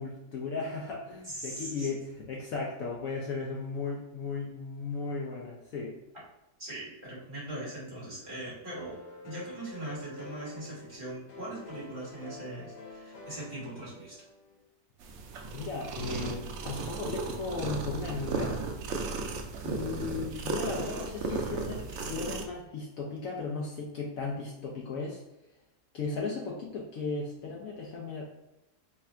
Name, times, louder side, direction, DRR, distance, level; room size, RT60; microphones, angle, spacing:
voice 1, 0.0-6.0 15.5-18.6 19.6-25.2 25.9-28.2, left 4 dB, 65° left, -2 dB, 1.0 m, -36 dB
voice 2, 1.3-1.9 6.6-9.0 9.2-14.2, right 1 dB, 30° right, -7 dB, 1.5 m, -40 dB
sound 1, 8.7-14.6, left 3 dB, 80° left, 1.5 m, -48 dB
sound 2, 15.0-22.5, right 3 dB, 80° right, 0.6 m, -35 dB
3.3 x 2.4 x 4.3 m, 0.93 s
omnidirectional pair, 1.8 m